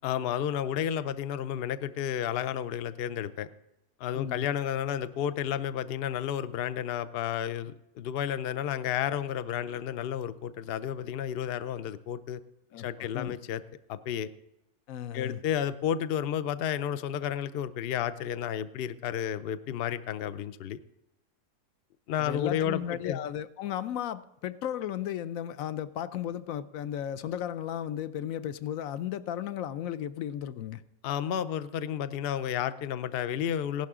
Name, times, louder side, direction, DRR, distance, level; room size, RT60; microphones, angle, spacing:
voice 1, 0.0-3.5 4.0-12.4 12.8-13.6 13.9-14.3 15.1-20.8 22.1-23.2 31.0-33.9, left 9 dB, 85° left, 13 dB, 0.5 m, -31 dB
voice 2, 4.1-4.5 12.7-13.4 14.9-15.4 22.2-30.8, left 10 dB, 70° left, 14 dB, 0.9 m, -35 dB
16.5 x 11.5 x 3.7 m, 0.90 s
omnidirectional pair, 1.8 m